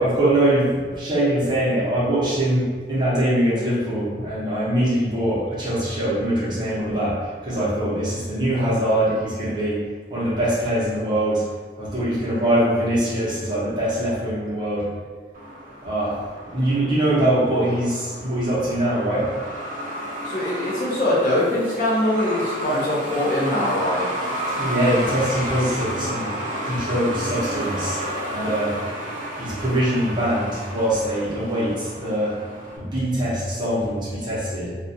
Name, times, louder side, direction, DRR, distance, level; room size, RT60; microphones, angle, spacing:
voice 1, 0.0-9.8 10.1-11.5 11.8-14.9 15.8-16.2 16.5-19.4 24.6-26.4 26.6-28.0 28.3-28.8 29.4-32.4 32.8-34.8, right 1 dB, 25° right, -9 dB, 0.7 m, -23 dB
Truck, 15.3-32.8, equal, 45° right, 0.4 m, -31 dB
voice 2, 20.2-24.0, left 1 dB, 45° left, -7 dB, 0.7 m, -22 dB
2.3 x 2.2 x 2.6 m, 1.5 s
head